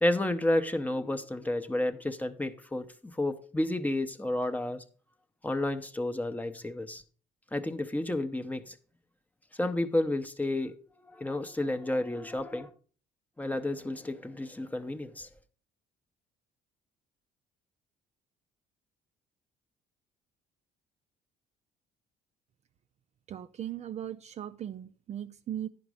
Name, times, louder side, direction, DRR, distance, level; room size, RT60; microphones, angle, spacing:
voice 1, 0.0-4.8 5.4-7.0 7.5-8.8 9.6-12.7 13.4-15.3, left 1 dB, 10° left, 0.7 m, -31 dB
voice 2, 23.3-25.7, right 10 dB, 40° right, 0.4 m, -38 dB
10.5 x 5.1 x 4.8 m
cardioid pair, 110°, 17 cm